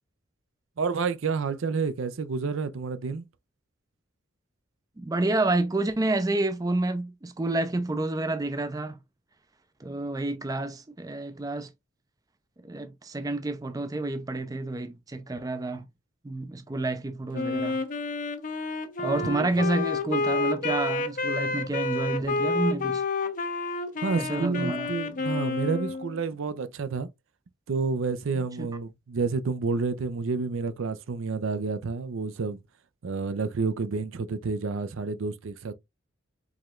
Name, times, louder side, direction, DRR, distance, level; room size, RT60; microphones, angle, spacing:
voice 1, 0.8-3.2 19.3-19.5 24.0-27.1 27.7-32.6 33.0-35.7, right 4 dB, 70° right, 0.5 m, -29 dB
voice 2, 5.0-9.0 9.8-11.7 12.6-15.9 16.2-17.8 19.0-23.0 24.2-24.9 28.6-28.7, right 2 dB, 15° right, 0.4 m, -29 dB
Wind instrument woodwind instrument, 17.3-26.2, left 3 dB, 40° left, 0.5 m, -29 dB
4.8 x 3.1 x 2.4 m
head